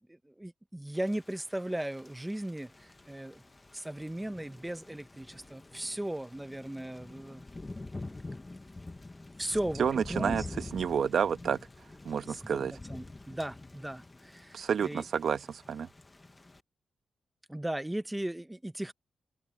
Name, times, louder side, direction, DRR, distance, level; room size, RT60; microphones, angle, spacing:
voice 1, 0.1-3.4 3.7-7.4 7.7-7.9 9.4-10.5 12.3-15.1 17.5-18.9, right 1 dB, 5° right, 0.8 m, -37 dB
Thunder / Rain, 0.9-16.6, left 2 dB, 15° left, 1.2 m, -47 dB
voice 2, 9.8-10.4 10.7-11.6 12.0-12.7 14.5-15.9, right 7 dB, 60° right, 1.1 m, -29 dB
open air
wide cardioid pair, 145°, 0 cm